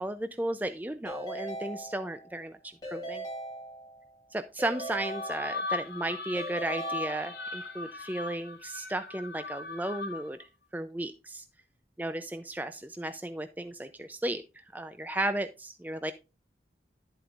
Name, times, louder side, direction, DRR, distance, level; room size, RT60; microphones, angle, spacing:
voice 1, 0.0-2.6 2.9-3.2 4.3-10.5 10.7-11.4 12.0-16.1, right 1 dB, 10° right, 9 dB, 0.4 m, -34 dB
Keyboard (musical) / Ringtone, 1.1-2.4 2.8-4.1 4.6-5.9 6.4-7.7, right 1 dB, 20° left, 5.7 m, -40 dB
sound 1, 4.7-10.4, left 3 dB, 75° left, 3.0 m, -38 dB
11.0 x 7.9 x 2.4 m, 0.27 s
head